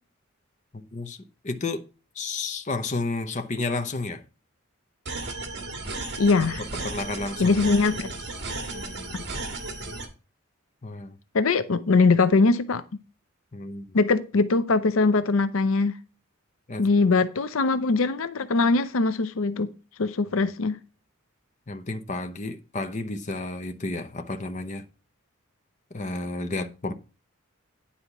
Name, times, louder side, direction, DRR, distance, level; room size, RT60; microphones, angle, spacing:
voice 1, 0.7-1.2 1.4-1.8 2.1-4.2 6.8-7.6 8.7-9.3 10.8-11.2 13.5-13.9 16.7-16.8 20.4-20.5 21.7-24.8 25.9-26.9, left 3 dB, 35° left, 0.7 m, -32 dB
sound 1, 5.1-10.1, right 3 dB, 55° right, 1.9 m, -34 dB
voice 2, 6.2-6.6 7.4-8.2 9.1-9.2 11.3-12.8 13.9-16.0 16.8-19.7 20.0-20.8, left 3 dB, 70° left, 0.6 m, -22 dB
9.8 x 4.2 x 5.8 m
head